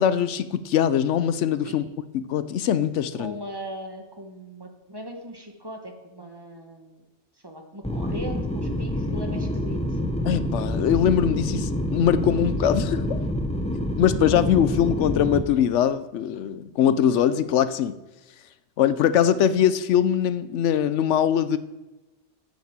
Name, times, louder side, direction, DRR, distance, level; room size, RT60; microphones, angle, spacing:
voice 1, 0.0-1.8 2.1-3.3 10.2-13.2 14.0-18.0 18.8-21.6, left 9 dB, 80° left, 13 dB, 0.9 m, -22 dB
voice 2, 3.2-7.0 7.4-10.0, equal, 20° right, 3 dB, 1.2 m, -39 dB
sound 1, 7.8-15.4, left 1 dB, 5° left, 0.7 m, -27 dB
8.7 x 7.3 x 7.3 m, 1.1 s
omnidirectional pair, 1.2 m